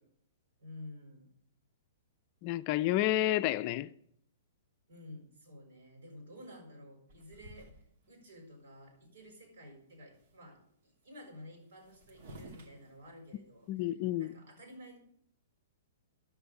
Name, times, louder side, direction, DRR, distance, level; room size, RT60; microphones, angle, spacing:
voice 1, 0.6-1.3 4.9-7.7 8.1-15.0, left 1 dB, 75° right, 6.3 m, -52 dB
voice 2, 2.4-3.9 13.7-14.3, left 14 dB, 40° left, 0.5 m, -30 dB
sound 1, 7.1-8.2 8.7-8.8 9.0-9.5 9.8-10.5 11.4-11.5 11.6-13.7, equal, 60° right, 2.6 m, -54 dB
10.5 x 7.0 x 7.8 m
hypercardioid pair, 125°, 0 cm